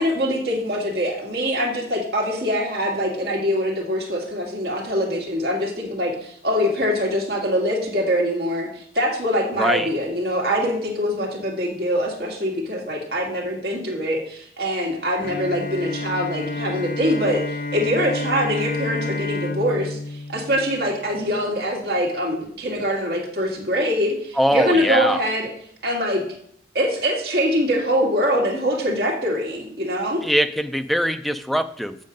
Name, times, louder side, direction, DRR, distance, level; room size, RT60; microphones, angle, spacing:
voice 1, 0.0-20.0 20.3-25.5 25.8-26.2 26.7-30.2, equal, 60° right, -1 dB, 2.1 m, -23 dB
voice 2, 9.6-9.9 24.4-25.2 30.2-32.0, equal, ahead, 9 dB, 0.4 m, -22 dB
Bowed string instrument, 15.2-21.4, left 2 dB, 50° left, 0.6 m, -30 dB
7.5 x 6.4 x 5.2 m, 0.64 s
head